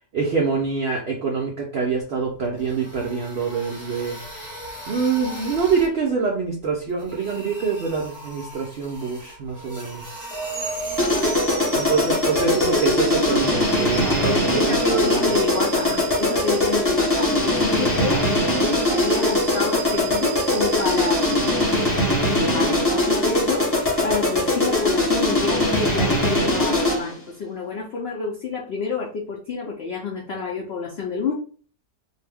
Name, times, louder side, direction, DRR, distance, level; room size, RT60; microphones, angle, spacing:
voice 1, 0.1-4.2 4.9-10.2 11.7-15.2, right 5 dB, 70° right, -2 dB, 0.5 m, -25 dB
sound 1, 2.4-5.9 6.9-11.4, equal, 20° right, 1.1 m, -39 dB
sound 2, 10.3-22.4, right 5 dB, 45° right, 0.9 m, -33 dB
sound 3, 11.0-27.2, left 1 dB, 15° left, 0.6 m, -21 dB
voice 2, 14.0-18.2 18.6-21.5 22.3-31.3, left 4 dB, 80° left, -1 dB, 0.5 m, -28 dB
2.6 x 2.1 x 3.4 m, 0.42 s
omnidirectional pair, 1.7 m